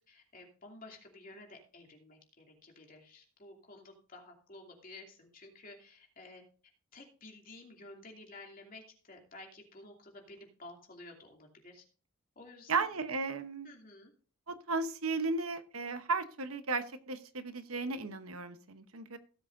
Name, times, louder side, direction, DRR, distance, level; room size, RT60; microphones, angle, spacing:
voice 1, 0.1-6.4 6.9-11.8 12.4-12.9 13.6-14.1, left 2 dB, 40° left, 1 dB, 2.8 m, -52 dB
voice 2, 12.7-13.7 14.5-19.2, right 3 dB, 85° right, 9 dB, 1.0 m, -35 dB
17.0 x 7.7 x 2.6 m, 0.39 s
head